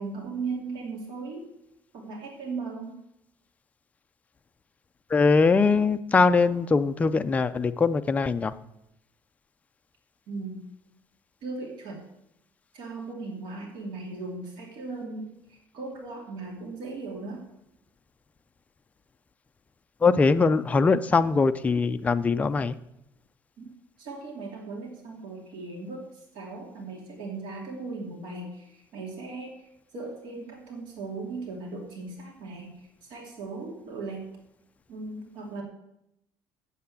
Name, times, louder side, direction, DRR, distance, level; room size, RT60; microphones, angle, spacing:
voice 1, 0.0-1.5 1.9-3.0 10.3-10.6 11.4-12.0 12.7-17.4 23.6-23.7 24.0-26.0 26.3-34.2 34.9-35.6, right 3 dB, 70° right, 0 dB, 2.7 m, -37 dB
voice 2, 5.1-8.5 20.0-22.7, left 4 dB, 15° left, 9 dB, 0.4 m, -22 dB
8.2 x 7.6 x 8.4 m, 0.82 s
cardioid pair, 160°, 8 cm